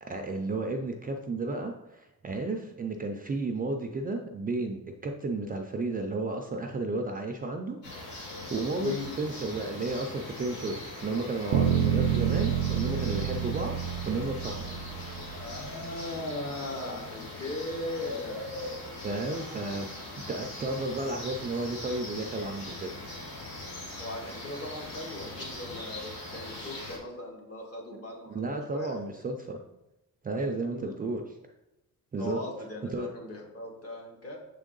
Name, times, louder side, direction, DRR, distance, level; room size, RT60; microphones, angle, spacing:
voice 1, 0.0-13.8 14.1-14.7 19.0-19.9 20.3-22.9 28.3-29.6 30.2-31.4 32.1-32.4 32.9-33.1, right 2 dB, 25° right, 3 dB, 0.3 m, -33 dB
sound 1, 7.8-27.0, left 2 dB, 75° left, 1.7 m, -41 dB
voice 2, 8.8-9.1 15.3-18.5 24.0-28.4 28.7-29.0 30.7-30.9 32.2-34.4, left 1 dB, 40° left, 0 dB, 1.2 m, -38 dB
sound 2, 11.5-15.5, right 9 dB, 90° right, 0.5 m, -28 dB
6.9 x 3.6 x 3.8 m, 0.94 s
wide cardioid pair, 170°, 35 cm